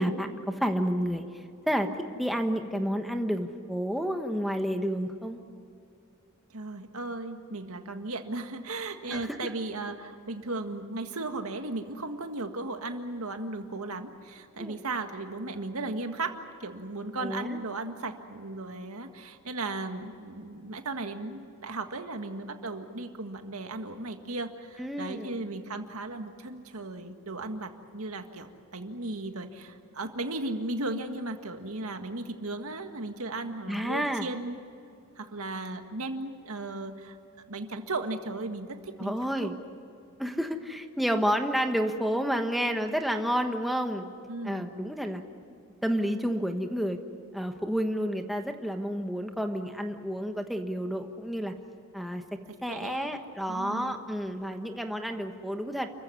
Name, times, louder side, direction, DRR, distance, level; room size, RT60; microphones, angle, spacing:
voice 1, 0.0-1.9 2.2-5.4 9.1-9.5 14.6-14.8 17.2-17.6 24.8-25.4 33.7-34.3 39.0-39.5 40.2-44.1 44.4-45.2 45.8-47.0 47.3-51.5 51.9-55.9, equal, ahead, 5 dB, 1.3 m, -30 dB
voice 2, 6.5-34.6 35.2-37.2 37.5-39.5 44.3-44.8 52.7-53.2 53.5-53.9, right 2 dB, 85° right, 6 dB, 1.8 m, -36 dB
29.5 x 15.0 x 9.6 m, 2.5 s
head